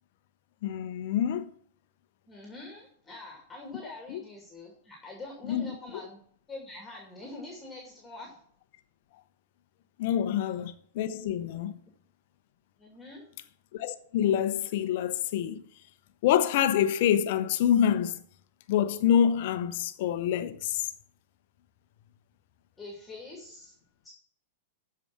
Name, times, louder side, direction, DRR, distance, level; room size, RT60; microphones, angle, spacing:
voice 1, 0.6-1.5 4.1-4.2 5.5-5.7 10.0-11.8 13.7-15.6 16.2-18.2 18.7-20.9, left 9 dB, 50° left, 0.8 m, -26 dB
voice 2, 2.3-6.2 6.5-8.4 10.4-10.5 12.8-13.2 22.8-23.7 24.0-24.1, left 2 dB, 10° left, 2.6 m, -44 dB
13.0 x 4.9 x 6.1 m
figure-of-eight pair, 100°, 0 cm